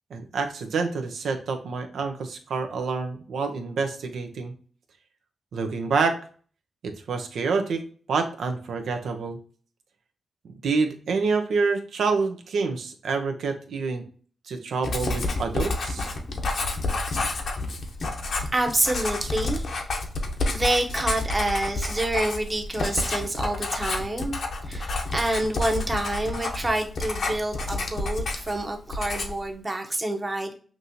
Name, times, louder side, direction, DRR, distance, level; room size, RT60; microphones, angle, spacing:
voice 1, 0.1-4.5 5.5-6.2 6.8-7.8 8.1-9.4 10.6-14.1 14.5-16.1, right 4 dB, 85° right, 6 dB, 0.7 m, -27 dB
Writing, 14.8-28.6 28.9-29.5, left 2 dB, 70° left, 0.8 m, -29 dB
voice 2, 18.5-19.6 20.5-24.4 24.7-30.5, right 1 dB, 30° right, 3 dB, 0.9 m, -27 dB
6.0 x 2.6 x 2.7 m, 0.43 s
cardioid pair, 60°, 0 cm